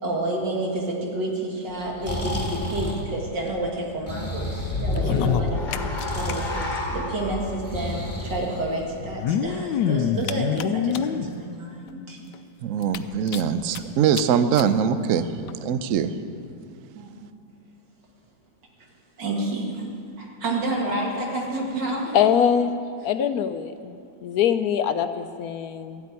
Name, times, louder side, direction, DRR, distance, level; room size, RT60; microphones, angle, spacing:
voice 1, 0.0-5.6 6.0-6.5 6.9-12.2 16.9-17.1 19.2-19.8 20.2-22.2, right 2 dB, 85° right, -1 dB, 2.8 m, -29 dB
Breathing, 1.7-9.2, left 1 dB, 10° left, 2.1 m, -33 dB
sound 1, 4.6-9.0, left 2 dB, 25° left, 1.7 m, -30 dB
sound 2, 4.9-6.3 6.6-6.7 6.9-7.0 8.0-8.1 9.0-11.3 11.9-12.0 12.3-12.4 12.8-13.8 14.1-14.2 14.6-14.7 15.5-15.6, left 8 dB, 90° left, 1.3 m, -26 dB
voice 2, 12.6-16.1, right 7 dB, 60° right, 11 dB, 0.9 m, -23 dB
voice 3, 22.1-22.7 23.0-26.0, left 8 dB, 70° left, 10 dB, 1.0 m, -23 dB
13.5 x 8.3 x 9.6 m, 2.4 s
omnidirectional pair, 1.9 m